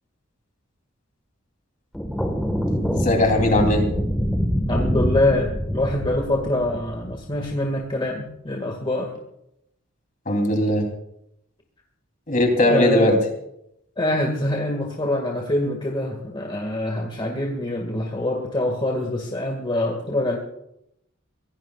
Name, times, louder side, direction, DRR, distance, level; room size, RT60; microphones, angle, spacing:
sound 1, 1.9-7.6, equal, 5° left, 1.5 m, -25 dB
voice 1, 2.9-3.9 10.2-10.8 12.3-13.2, left 1 dB, 40° left, 3 dB, 3.3 m, -19 dB
voice 2, 4.7-9.1 12.6-13.2 14.0-20.4, left 1 dB, 25° left, 0 dB, 2.0 m, -25 dB
24.5 x 17.5 x 2.4 m, 0.79 s
head